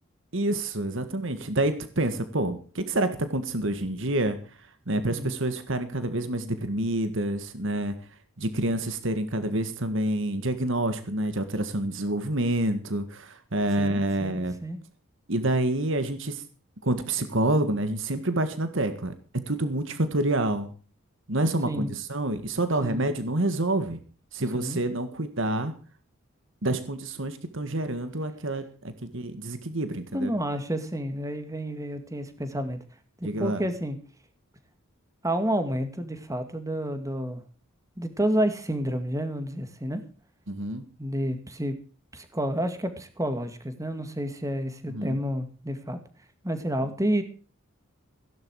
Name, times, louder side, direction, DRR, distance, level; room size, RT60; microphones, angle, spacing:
voice 1, 0.3-8.0 8.4-14.6 15.3-16.4 16.8-19.1 19.5-20.7 21.3-24.0 24.3-25.7 26.6-30.3 33.2-33.6 40.5-40.8 44.9-45.2, right 1 dB, 60° right, 10 dB, 1.8 m, -28 dB
voice 2, 13.8-14.8 21.6-21.9 22.8-23.1 24.5-24.8 30.1-32.8 33.2-34.0 35.2-37.4 38.0-40.0 41.0-41.7 42.1-46.0 46.4-47.2, equal, 15° right, 8 dB, 2.1 m, -30 dB
17.0 x 11.0 x 4.8 m, 0.39 s
head